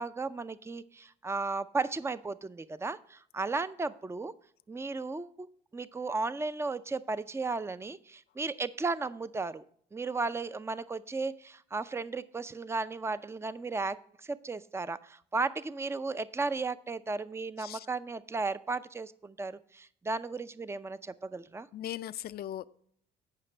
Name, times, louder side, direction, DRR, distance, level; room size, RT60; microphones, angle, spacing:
voice 1, 0.0-4.3 4.7-5.5 5.7-9.6 9.9-21.7, right 3 dB, 10° right, 14 dB, 0.5 m, -35 dB
voice 2, 21.7-22.7, left 12 dB, 50° left, 14 dB, 0.5 m, -38 dB
17.0 x 5.8 x 3.3 m, 0.63 s
hypercardioid pair, 60°, 21 cm